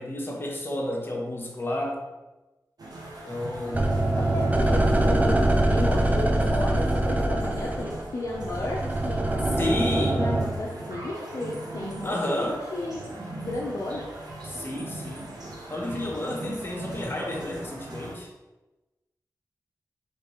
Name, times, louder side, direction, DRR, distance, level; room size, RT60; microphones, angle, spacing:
voice 1, 0.0-2.0 3.3-3.9 9.6-10.3 12.0-12.6 14.5-15.3 15.7-18.3, left 1 dB, 30° left, -1 dB, 1.1 m, -31 dB
sound 1, 2.8-18.1, right 2 dB, 70° right, 0.9 m, -40 dB
sound 2, 3.7-10.5, right 1 dB, 20° right, 0.6 m, -23 dB
voice 2, 4.2-9.3 10.0-13.1 13.4-14.1, left 2 dB, 55° left, -3 dB, 0.6 m, -33 dB
3.3 x 3.2 x 4.4 m, 1.1 s
cardioid pair, 45°, 7 cm